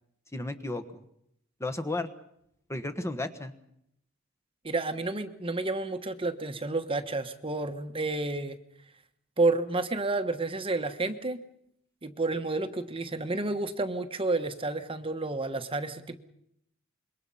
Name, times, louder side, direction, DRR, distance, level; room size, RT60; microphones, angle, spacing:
voice 1, 0.3-1.0 1.6-2.1 2.7-3.5, left 2 dB, 15° left, 9 dB, 1.4 m, -33 dB
voice 2, 4.6-8.6 9.4-11.4 12.0-16.2, right 2 dB, 25° right, 9 dB, 1.2 m, -30 dB
26.5 x 23.0 x 5.6 m, 0.74 s
head